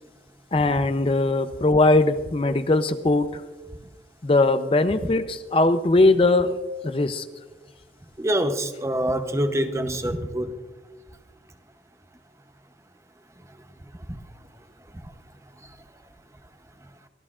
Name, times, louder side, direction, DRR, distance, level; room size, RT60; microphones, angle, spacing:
voice 1, 0.5-3.4 4.2-6.6 6.8-7.3, left 2 dB, 30° left, 0.5 m, -20 dB
voice 2, 8.2-10.5, right 1 dB, 15° right, 0.7 m, -25 dB
23.5 x 14.5 x 2.4 m
head